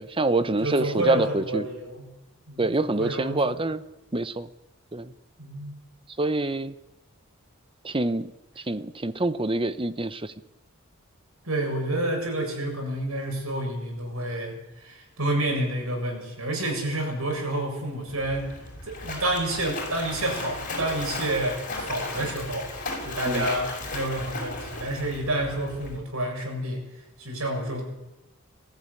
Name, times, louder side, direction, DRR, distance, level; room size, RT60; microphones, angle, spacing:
voice 1, 0.0-1.7 2.6-3.8 4.1-4.5 4.9-5.1 6.2-6.7 7.8-8.3 8.6-10.3 23.3-23.5, right 2 dB, 25° right, 12 dB, 0.9 m, -26 dB
voice 2, 0.6-2.1 2.5-3.6 5.4-5.8 11.4-18.5 18.9-22.7 23.0-26.8 27.2-27.9, right 1 dB, 85° right, 1 dB, 7.3 m, -29 dB
Splash splatter, 18.1-26.0, left 2 dB, 40° left, 6.6 m, -35 dB
20.0 x 14.5 x 9.8 m, 0.96 s
head